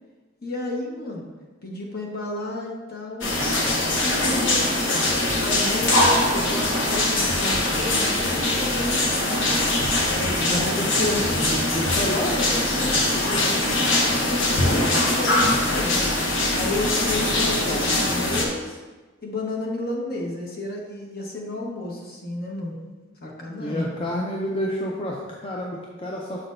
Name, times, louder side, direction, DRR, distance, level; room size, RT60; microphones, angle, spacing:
voice 1, 0.4-1.3 1.6-3.3 3.9-9.6 10.0-10.8 11.9-16.0 16.5-18.8 19.2-22.8 23.2-24.1, left 2 dB, 50° left, -1 dB, 1.2 m, -32 dB
sound 1, 3.2-18.5, left 1 dB, 80° left, 1.0 m, -22 dB
voice 2, 10.3-12.5 17.2-17.8 23.5-26.4, left 1 dB, 30° left, -2 dB, 0.5 m, -29 dB
6.7 x 6.0 x 2.6 m, 1.3 s
head